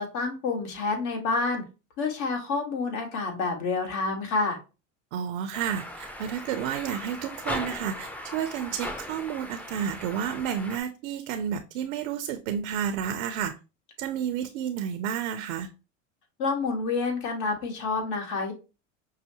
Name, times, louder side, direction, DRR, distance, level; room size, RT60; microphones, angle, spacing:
voice 1, 0.0-1.6 2.0-4.6 16.4-18.5, left 4 dB, 65° left, 3 dB, 1.5 m, -28 dB
voice 2, 5.1-13.5 14.0-15.7, right 8 dB, 80° right, 8 dB, 0.5 m, -31 dB
sound 1, 5.5-10.8, left 1 dB, 5° left, 0.5 m, -38 dB
5.5 x 2.0 x 2.8 m, 0.30 s
supercardioid pair, 95°, 35 cm